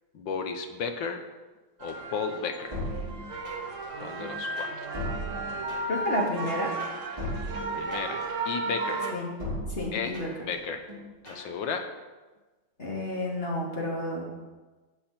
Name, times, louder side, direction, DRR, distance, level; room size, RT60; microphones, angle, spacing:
voice 1, 0.1-1.2 1.8-2.8 4.0-5.0 7.4-9.0 9.9-10.1 10.5-10.8 11.2-11.9, left 5 dB, 65° left, 6 dB, 1.7 m, -34 dB
sound 1, 1.8-9.1, right 2 dB, 50° right, 1.1 m, -34 dB
sound 2, 2.7-3.8 4.2-6.1 6.4-8.3 8.6-10.5 10.9-11.5, left 1 dB, 15° right, 4.9 m, -37 dB
voice 2, 5.9-6.7 9.1-9.3 9.7-10.3 12.8-14.3, left 1 dB, 30° left, -3 dB, 2.7 m, -31 dB
17.5 x 7.1 x 4.4 m, 1.2 s
omnidirectional pair, 2.3 m